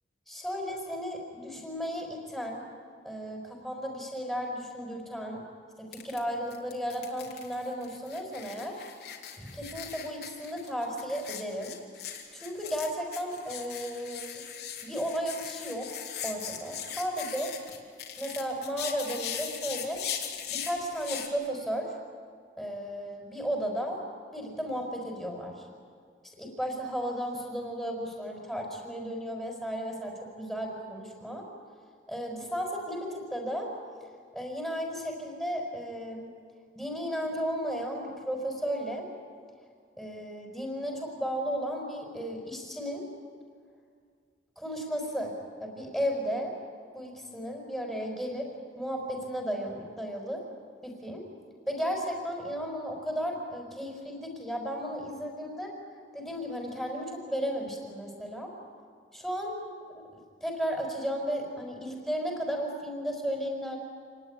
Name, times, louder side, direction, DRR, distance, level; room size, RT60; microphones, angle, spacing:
voice 1, 0.3-2.7 3.0-5.4 5.8-8.8 9.4-11.8 12.3-14.5 14.8-15.9 16.2-17.5 18.2-20.0 20.5-21.9 22.6-24.0 24.3-25.5 26.4-31.5 32.1-33.7 34.3-36.3 36.7-39.1 40.0-43.0 44.6-45.3 45.6-46.5 46.9-48.5 48.7-50.4 50.8-51.2 51.7-55.7 56.1-58.5 59.1-59.6 59.9-60.0 60.4-63.8, equal, ahead, 1 dB, 5.2 m, -34 dB
sound 1, 5.9-6.2 6.5-21.3, left 9 dB, 65° left, 3.5 m, -39 dB
28.0 x 19.0 x 9.9 m, 2.1 s
head